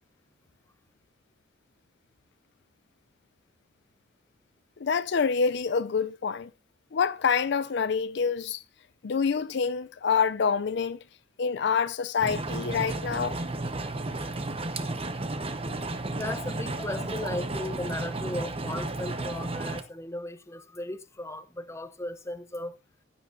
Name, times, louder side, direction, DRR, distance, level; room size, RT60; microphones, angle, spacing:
voice 1, 4.8-6.5 6.9-8.6 9.0-11.0 11.4-13.4, left 6 dB, 65° left, 0.5 m, -26 dB
sound 1, 12.2-19.8, right 2 dB, 30° right, 1.0 m, -33 dB
voice 2, 15.9-22.8, left 1 dB, 15° left, 0.8 m, -36 dB
16.0 x 9.3 x 2.7 m
head